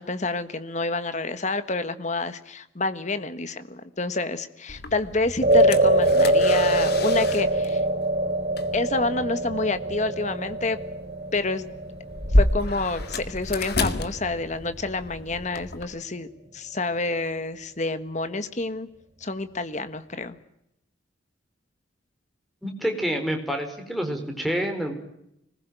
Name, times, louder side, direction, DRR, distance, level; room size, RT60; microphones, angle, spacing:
voice 1, 0.0-7.8 8.7-10.8 11.3-11.7 12.3-16.3 16.5-18.9 19.2-20.4, left 3 dB, 40° left, 11 dB, 1.5 m, -28 dB
sound 1, 4.7-15.8, left 1 dB, 55° left, 2.0 m, -30 dB
sound 2, 5.4-13.9, right 1 dB, 35° right, 6.4 m, -24 dB
voice 2, 22.6-24.9, equal, ahead, 4 dB, 4.4 m, -28 dB
26.0 x 20.5 x 9.2 m, 0.82 s
head